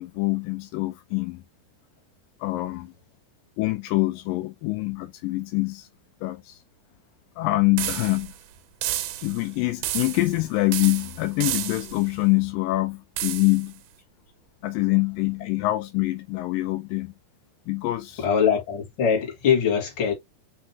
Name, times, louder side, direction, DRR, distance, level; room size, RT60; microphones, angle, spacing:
voice 1, 0.0-1.4 2.4-2.9 3.6-5.9 6.2-6.6 7.4-8.3 9.2-13.7 14.6-17.1 17.7-18.3, left 21 dB, 80° left, 2.2 m, -25 dB
sound 1, 7.8-8.4 8.8-9.5 9.8-10.4 10.7-12.1 13.2-13.7, right 14 dB, 80° right, 2.3 m, -31 dB
voice 2, 18.2-20.1, left 7 dB, 40° left, 1.9 m, -22 dB
5.6 x 3.2 x 2.6 m
omnidirectional pair, 4.1 m